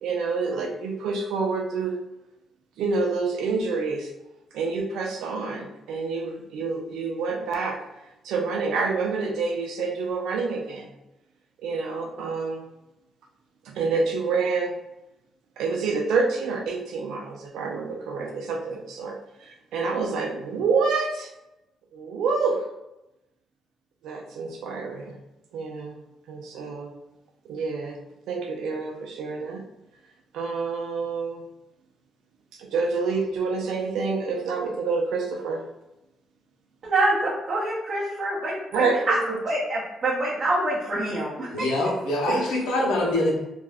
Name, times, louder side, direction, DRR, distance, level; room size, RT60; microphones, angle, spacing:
voice 1, 0.0-2.0 2.8-4.1 4.5-7.8 8.2-10.9 11.6-12.6 13.6-14.7 15.6-19.2 19.4-21.3 21.9-22.6 24.0-25.2 25.5-26.0 26.3-26.9 27.5-28.0 28.3-29.6 30.3-31.4 32.6-35.6 38.7-39.4 42.3-42.4, right 4 dB, 85° right, 1 dB, 0.6 m, -27 dB
voice 2, 36.8-39.1 39.4-41.7 42.3-42.4, right 2 dB, 45° right, -7 dB, 0.8 m, -26 dB
voice 3, 41.5-43.4, left 1 dB, 85° left, -2 dB, 0.8 m, -24 dB
2.5 x 2.2 x 3.3 m, 0.91 s
cardioid pair, 90°, 0 cm